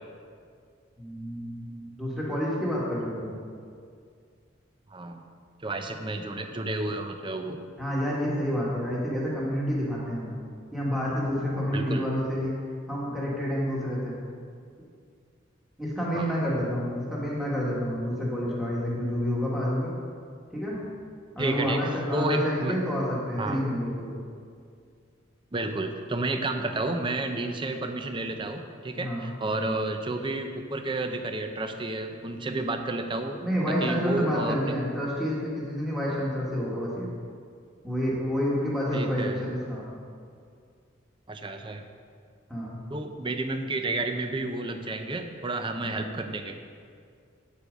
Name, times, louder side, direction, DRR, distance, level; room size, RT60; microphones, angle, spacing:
voice 1, 1.0-3.4 7.8-10.3 10.7-12.5 12.9-14.2 15.8-19.9 20.5-20.8 21.3-24.1 28.9-29.3 33.4-37.1 37.8-39.9 42.5-42.7 45.8-46.0, equal, ahead, -6 dB, 1.5 m, -29 dB
voice 2, 4.9-5.2 5.6-7.6 11.7-12.1 16.1-16.4 21.4-22.8 23.4-23.6 25.5-33.4 33.7-34.8 38.9-39.5 41.3-41.8 42.9-46.6, right 2 dB, 25° right, 6 dB, 0.6 m, -31 dB
8.5 x 8.4 x 5.2 m, 2.2 s
head